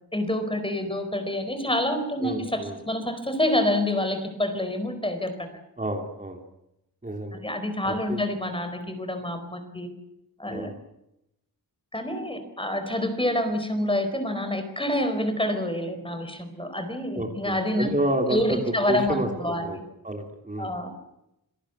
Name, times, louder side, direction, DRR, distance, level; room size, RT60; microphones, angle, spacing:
voice 1, 0.1-5.5 7.3-9.9 10.4-10.7 11.9-17.9 18.3-19.8 20.6-20.9, left 1 dB, 15° left, 8 dB, 4.5 m, -27 dB
voice 2, 2.2-2.8 5.8-6.4 7.0-7.4 7.9-8.2 10.5-10.7 17.1-19.8 20.0-20.7, right 1 dB, 20° right, 3 dB, 3.2 m, -30 dB
27.0 x 18.5 x 8.2 m, 0.85 s
wide cardioid pair, 120°, 38 cm